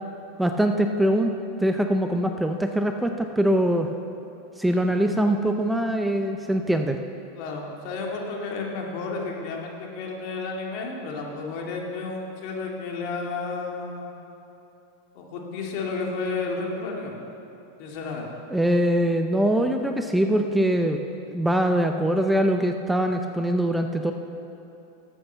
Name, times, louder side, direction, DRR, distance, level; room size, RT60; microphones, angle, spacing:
voice 1, 0.4-1.3 1.6-3.9 4.6-7.0 18.5-21.0 21.3-24.1, right 1 dB, 5° right, 5 dB, 0.6 m, -23 dB
voice 2, 4.8-5.1 7.4-14.1 15.1-17.1 17.8-18.3, left 4 dB, 55° left, -1 dB, 2.3 m, -32 dB
12.0 x 7.9 x 6.8 m, 2.8 s
hypercardioid pair, 120°, 0 cm